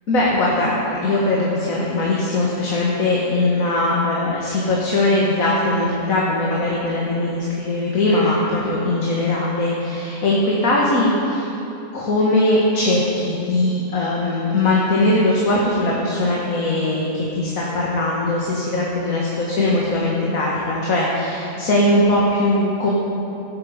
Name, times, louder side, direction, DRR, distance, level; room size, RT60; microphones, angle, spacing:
voice 1, 0.1-0.7 1.0-11.4 11.9-22.9, left 2 dB, 65° left, -4 dB, 2.0 m, -20 dB
17.0 x 9.3 x 5.2 m, 2.9 s
omnidirectional pair, 1.6 m